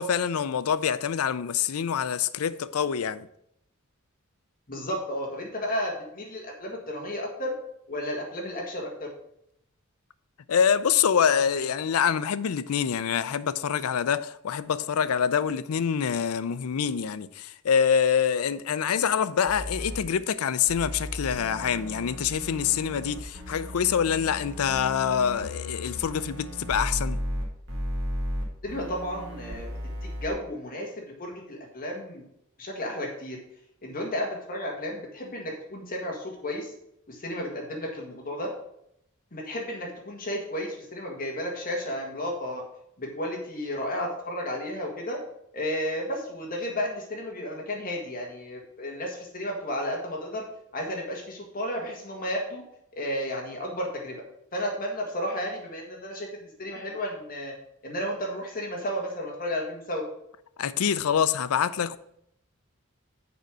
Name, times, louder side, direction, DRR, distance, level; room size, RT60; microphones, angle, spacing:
voice 1, 0.0-3.3 10.5-27.2 60.6-62.0, left 7 dB, 90° left, 0.4 m, -25 dB
voice 2, 4.7-7.5 7.9-9.1 28.6-29.7 30.0-30.9 31.2-32.2 32.6-33.4 33.8-36.7 37.1-38.5 39.3-42.6 43.0-45.2 45.5-50.4 50.7-52.6 52.9-54.2 54.5-57.5 57.8-60.0, equal, 40° left, 1.7 m, -33 dB
sound 1, 19.5-20.0 20.7-30.3, equal, 65° right, 2.0 m, -35 dB
6.8 x 5.2 x 6.0 m
head